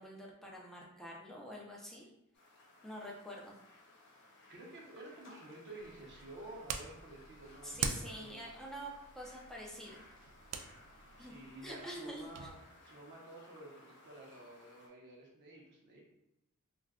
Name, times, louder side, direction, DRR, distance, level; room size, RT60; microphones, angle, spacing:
voice 1, 0.0-2.1 2.8-3.6 7.6-10.0 11.2-11.3 11.6-12.5, equal, ahead, -3 dB, 0.5 m, -47 dB
sound 1, 2.3-14.9, left 1 dB, 55° left, 0.7 m, -60 dB
voice 2, 4.5-8.5 11.1-12.5 12.8-16.0, right 1 dB, 55° right, -2 dB, 0.7 m, -52 dB
sound 2, 5.8-12.5, right 6 dB, 90° right, 0.3 m, -45 dB
2.4 x 2.1 x 3.4 m, 0.86 s
head